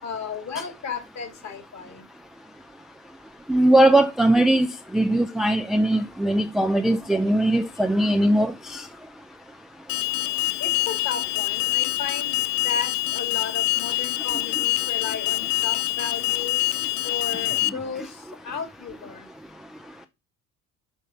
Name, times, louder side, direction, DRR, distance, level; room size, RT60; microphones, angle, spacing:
voice 1, 0.0-2.0 10.6-16.6 17.0-19.3, left 5 dB, 45° left, 2.5 m, -34 dB
voice 2, 3.5-8.8, right 1 dB, ahead, 0.5 m, -20 dB
Alarm, 9.9-17.7, left 18 dB, 75° left, 0.5 m, -25 dB
5.4 x 5.2 x 5.8 m
hypercardioid pair, 55°, 39 cm